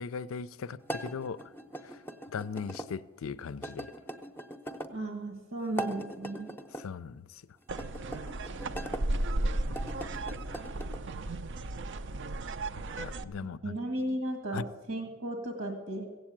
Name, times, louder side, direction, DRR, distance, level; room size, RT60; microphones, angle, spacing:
voice 1, 0.0-1.5 1.8-2.0 2.3-3.9 6.8-7.3 13.0-13.8 14.5-14.6, left 5 dB, 70° left, 0.4 m, -38 dB
sound 1, 0.8-2.9 3.6-4.9 5.6-6.9 7.7-9.0 9.6-11.0, right 1 dB, 10° left, 0.6 m, -41 dB
voice 2, 4.9-6.5 13.6-16.1, right 1 dB, 85° right, 1.8 m, -35 dB
sound 2, 7.7-13.2, right 2 dB, 60° right, 0.5 m, -34 dB
15.5 x 7.9 x 8.8 m
head